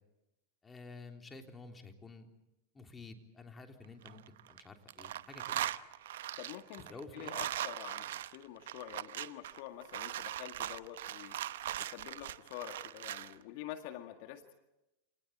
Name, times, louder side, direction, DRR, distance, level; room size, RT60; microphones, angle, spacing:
voice 1, 0.6-2.3 2.7-5.7 6.8-7.3, left 3 dB, 15° left, 4 dB, 3.6 m, -51 dB
sound 1, 3.8-4.6 4.9-13.3, right 12 dB, 75° right, 0.9 m, -40 dB
voice 2, 6.4-6.8 7.1-11.4 11.8-14.5, left 12 dB, 60° left, 7 dB, 1.8 m, -47 dB
28.5 x 19.5 x 8.7 m, 0.96 s
hypercardioid pair, 105°, 0 cm